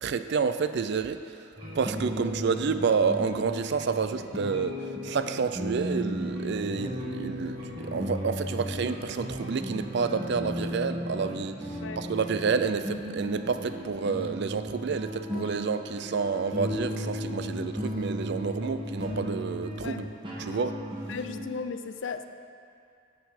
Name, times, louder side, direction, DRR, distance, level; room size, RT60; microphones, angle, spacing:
voice 1, 0.0-20.1 20.4-20.8, right 5 dB, 55° right, 10 dB, 0.4 m, -29 dB
sound 1, 1.6-21.4, equal, 25° right, 1.8 m, -35 dB
voice 2, 21.1-22.2, left 5 dB, 60° left, 8 dB, 0.5 m, -36 dB
11.5 x 7.5 x 4.3 m, 2.4 s
head